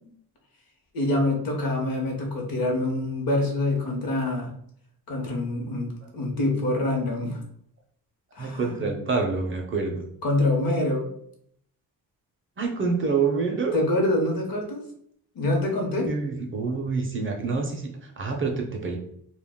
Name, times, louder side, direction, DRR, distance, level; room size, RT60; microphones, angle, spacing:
voice 1, 0.9-4.5 5.1-7.4 8.3-8.9 10.2-11.1 13.7-14.8 15.3-16.1, left 2 dB, 60° left, 1 dB, 0.8 m, -25 dB
voice 2, 8.4-10.1 12.6-13.8 16.1-19.0, right 4 dB, 35° right, 1 dB, 0.4 m, -27 dB
2.2 x 2.1 x 3.4 m, 0.66 s
wide cardioid pair, 135°, 39 cm